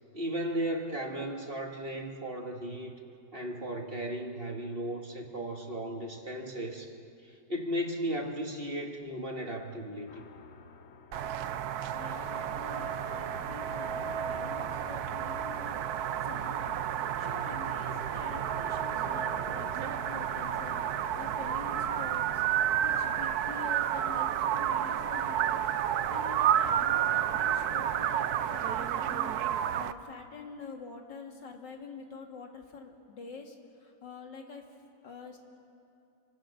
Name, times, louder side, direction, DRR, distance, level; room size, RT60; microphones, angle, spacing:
voice 1, 0.1-2.9 3.3-6.9 7.2-10.2, equal, 30° right, 2 dB, 1.6 m, -35 dB
sound 1, 10.1-26.0, left 5 dB, 50° left, 0.9 m, -51 dB
sound 2, 11.1-29.9, right 10 dB, 65° right, 1.1 m, -31 dB
voice 2, 11.9-16.9 17.2-22.4 22.8-25.6 26.1-34.6 35.0-35.4, left 4 dB, 75° left, 2 dB, 2.8 m, -46 dB
28.0 x 24.5 x 6.5 m, 2.7 s
omnidirectional pair, 2.0 m